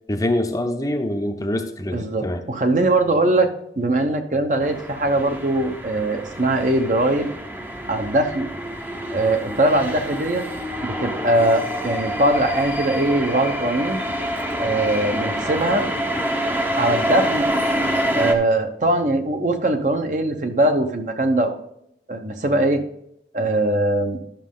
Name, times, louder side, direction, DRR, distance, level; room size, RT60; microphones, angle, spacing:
voice 1, 0.1-2.4, left 1 dB, 20° left, 5 dB, 0.7 m, -24 dB
voice 2, 1.9-3.5 3.8-7.3 7.9-8.5 9.1-10.4 10.8-14.0 14.6-15.9 16.8-17.5 18.1-21.6 22.1-22.8 23.3-24.2, right 1 dB, 45° right, 6 dB, 0.9 m, -21 dB
sound 1, 4.6-18.3, equal, 10° right, 0.7 m, -27 dB
11.5 x 6.3 x 3.7 m, 0.73 s
head